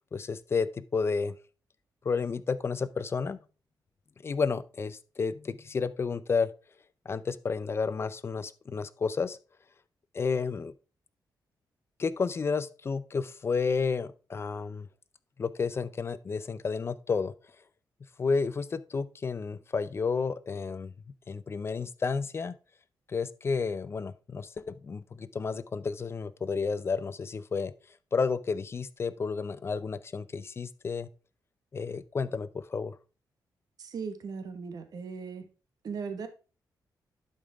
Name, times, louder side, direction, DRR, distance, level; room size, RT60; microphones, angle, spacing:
voice 1, 0.1-1.4 2.0-3.4 4.2-6.5 7.1-9.4 10.1-10.7 12.0-14.9 15.4-17.3 18.2-20.9 21.3-22.6 23.1-27.7 28.1-31.1 31.7-33.0, left 5 dB, 35° left, 0.5 m, -31 dB
voice 2, 33.8-35.5 35.8-36.3, right 5 dB, 60° right, 1.3 m, -38 dB
11.0 x 5.2 x 3.4 m
wide cardioid pair, 125°, 7 cm